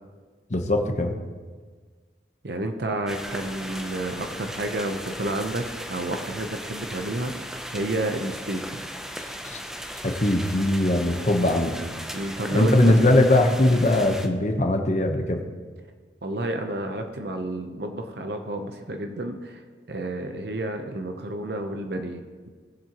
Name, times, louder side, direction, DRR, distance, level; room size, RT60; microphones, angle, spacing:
voice 1, 0.5-1.1 9.5-9.6 10.0-11.7 12.5-15.4, left 1 dB, 40° left, 4 dB, 1.0 m, -20 dB
voice 2, 2.4-7.3 7.7-8.8 12.1-13.0 16.2-22.5, right 1 dB, 60° right, 5 dB, 0.8 m, -30 dB
sound 1, 3.1-14.3, equal, 5° right, 0.6 m, -37 dB
19.5 x 7.5 x 3.0 m, 1.5 s
head